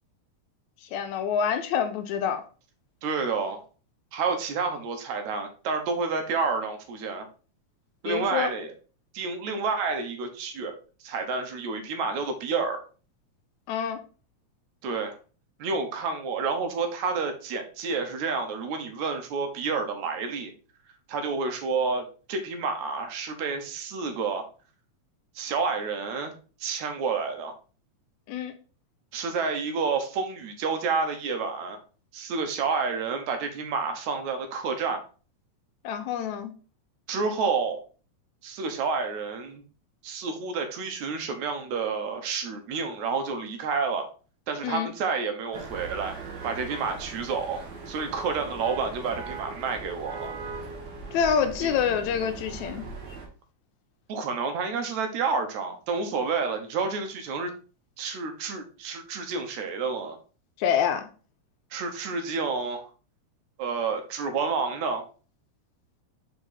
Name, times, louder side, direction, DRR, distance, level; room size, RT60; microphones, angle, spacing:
voice 1, 0.9-2.4 8.1-8.5 13.7-14.0 28.3-28.5 35.8-36.5 44.6-44.9 51.1-52.8 60.6-61.1, left 7 dB, 80° left, 2.0 m, -26 dB
voice 2, 3.0-3.6 4.1-7.3 8.0-8.7 9.1-10.7 11.0-12.8 14.8-15.2 15.6-20.5 21.1-24.5 25.4-26.3 26.6-27.5 29.1-31.8 32.1-35.0 37.1-37.8 38.4-39.6 40.0-44.1 44.5-46.2 46.4-47.6 47.9-50.3 51.6-51.7 54.1-57.5 58.0-60.2 61.7-62.8 63.6-65.0, right 4 dB, 75° right, 2.2 m, -29 dB
sound 1, 45.5-53.3, right 4 dB, 50° right, 1.4 m, -39 dB
5.0 x 4.9 x 4.0 m
omnidirectional pair, 3.4 m